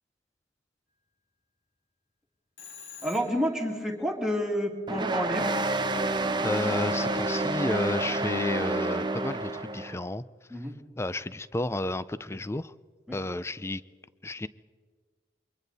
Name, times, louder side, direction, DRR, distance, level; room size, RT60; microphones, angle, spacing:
Telephone, 2.6-3.7, left 7 dB, 70° left, 3.8 m, -46 dB
voice 1, 3.0-5.5 10.5-10.8 13.1-13.2, equal, 5° right, 0 dB, 2.7 m, -29 dB
sound 1, 4.9-10.0, right 2 dB, 25° right, 1.0 m, -29 dB
voice 2, 6.4-10.2 11.0-12.7 13.1-13.8 14.2-14.5, left 2 dB, 15° left, 16 dB, 0.5 m, -31 dB
28.0 x 24.0 x 4.1 m, 1.5 s
head